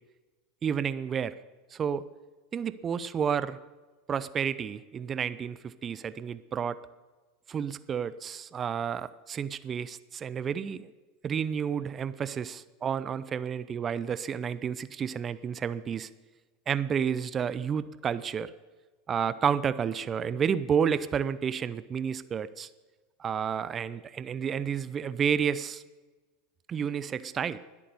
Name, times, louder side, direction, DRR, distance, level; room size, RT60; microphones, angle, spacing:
voice 1, 0.6-1.3 1.7-2.0 2.5-3.6 4.1-6.8 7.5-10.9 11.2-16.1 16.7-18.5 19.1-22.7 23.2-25.8 26.7-27.6, right 7 dB, 30° right, 15 dB, 0.7 m, -30 dB
21.0 x 8.6 x 6.8 m, 1.3 s
hypercardioid pair, 85°, 0 cm